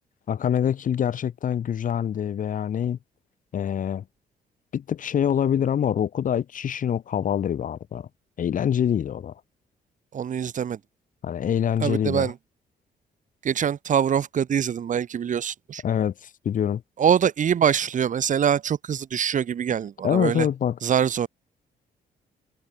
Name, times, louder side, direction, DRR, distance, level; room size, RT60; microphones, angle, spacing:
voice 1, 0.3-3.0 3.5-4.0 4.7-8.1 8.4-9.3 11.2-12.3 15.8-16.8 20.0-20.8, left 9 dB, 55° left, 3.6 m, -25 dB
voice 2, 10.1-10.8 11.8-12.4 13.4-15.8 17.0-20.5 20.8-21.3, right 8 dB, 50° right, 5.6 m, -24 dB
cardioid pair, 130°, 16 cm